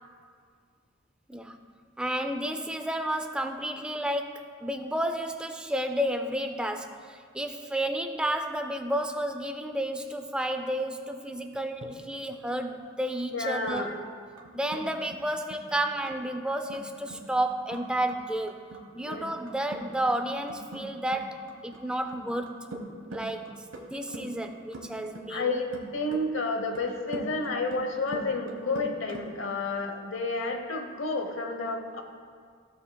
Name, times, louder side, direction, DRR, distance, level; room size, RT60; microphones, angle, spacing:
voice 1, 2.0-13.9 14.5-18.7 18.9-22.8 23.1-25.5, right 1 dB, 5° right, 6 dB, 0.3 m, -31 dB
sound 1, 11.4-11.9 13.7-13.8 14.4-14.8 15.1-15.2 15.5-15.8 16.1-16.2 16.5-16.8 17.1-17.2 17.5-17.8 18.1-18.2 18.5-18.8 19.1-19.8 20.1-20.2 20.5-20.8 21.1-21.2 21.5-21.8 22.1-22.8 23.1-24.5 24.7-25.4 25.7-26.2 26.7-27.8 28.1-29.2, right 2 dB, 85° right, 1.2 m, -41 dB
voice 2, 13.3-13.9 19.0-19.3 25.3-25.7 25.9-32.0, left 3 dB, 80° left, 5 dB, 0.9 m, -30 dB
16.0 x 5.5 x 2.2 m, 2.1 s
head